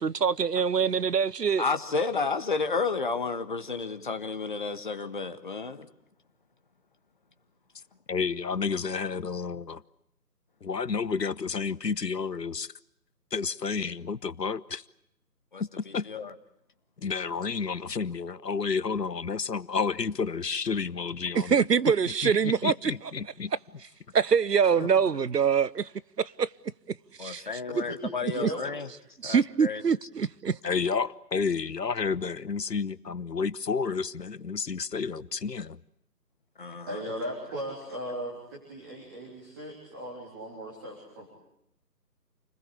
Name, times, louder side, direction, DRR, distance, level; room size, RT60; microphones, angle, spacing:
voice 1, 0.0-1.6 21.5-22.9 24.1-25.9 26.4-26.5 27.2-27.4 27.8-27.9 29.2-30.6, right 6 dB, 75° right, 1.0 m, -24 dB
voice 2, 1.6-5.9 15.5-15.6 16.1-16.3 24.8-24.9 27.2-28.9 29.2-29.8 36.6-37.0, left 4 dB, 30° left, 1.4 m, -31 dB
voice 3, 8.1-9.8 10.6-12.7 13.3-14.8 15.9-16.1 17.0-21.6 22.1-23.5 30.6-35.8, left 5 dB, 80° left, 1.2 m, -30 dB
voice 4, 28.3-28.6 36.9-41.3, right 1 dB, 15° right, 3.5 m, -37 dB
29.0 x 20.5 x 8.4 m
figure-of-eight pair, 165°, 48 cm